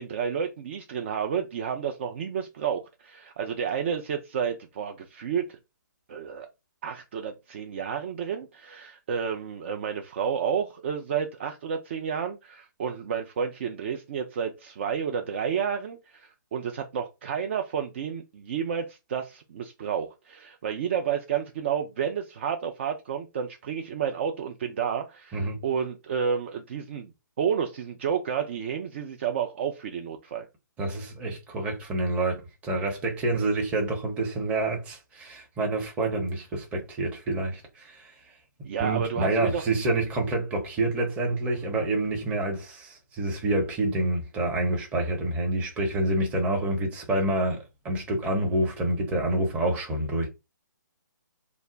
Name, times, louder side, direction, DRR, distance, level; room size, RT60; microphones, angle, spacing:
voice 1, 0.0-5.6 6.1-6.5 6.8-27.1 27.4-30.5 38.6-39.6, right 7 dB, 35° right, 0.4 m, -30 dB
voice 2, 25.3-25.6 30.8-38.1 38.8-50.3, right 2 dB, 15° right, 0.7 m, -27 dB
2.3 x 2.0 x 3.8 m
figure-of-eight pair, 135°, 11 cm